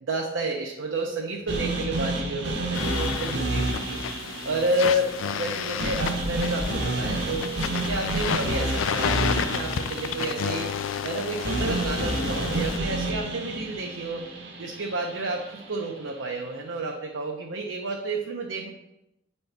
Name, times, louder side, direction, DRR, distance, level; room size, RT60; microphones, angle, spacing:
voice 1, 0.0-4.0 4.4-7.5 7.8-10.7 11.0-14.3 14.6-18.7, right 2 dB, 80° right, 0 dB, 0.7 m, -30 dB
sound 1, 1.5-15.6, right 2 dB, 60° right, 1.0 m, -30 dB
sound 2, 2.7-12.8, left 8 dB, 90° left, 0.3 m, -31 dB
8.0 x 4.2 x 3.3 m, 0.89 s
head